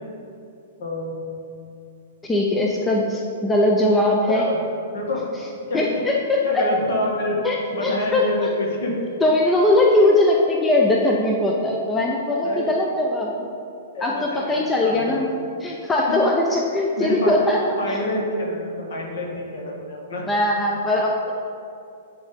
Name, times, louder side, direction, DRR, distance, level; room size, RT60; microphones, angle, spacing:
voice 1, 0.8-1.2 4.3-4.6 4.9-5.2 5.7-6.0 6.4-7.4 7.7-9.0 12.4-12.6 13.9-14.5 14.8-15.2 16.1-16.2 17.0-17.3 17.8-20.3, left 1 dB, 55° left, -1 dB, 1.4 m, -27 dB
voice 2, 2.2-4.5 5.7-6.6 7.4-8.2 9.2-13.4 14.0-15.3 15.6-17.6 17.9-18.0 20.3-21.4, left 1 dB, 10° left, -1 dB, 0.5 m, -20 dB
10.0 x 3.5 x 3.7 m, 2.5 s
figure-of-eight pair, 105°, 0 cm